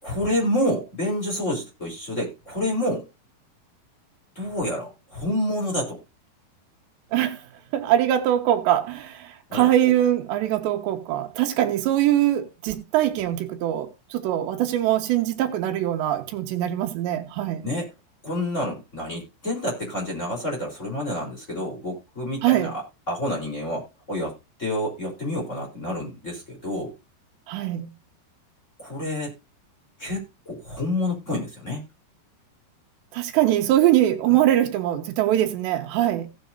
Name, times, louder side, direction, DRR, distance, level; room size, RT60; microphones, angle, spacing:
voice 1, 0.0-3.0 4.4-6.0 9.5-9.7 17.6-17.8 18.2-22.7 23.1-24.3 24.6-26.9 28.8-29.3 30.0-31.8, left 1 dB, 20° left, 3.6 m, -28 dB
voice 2, 7.7-17.7 22.4-22.8 27.5-27.9 33.1-36.3, right 12 dB, 85° right, 3.4 m, -22 dB
17.0 x 7.7 x 2.6 m
omnidirectional pair, 5.0 m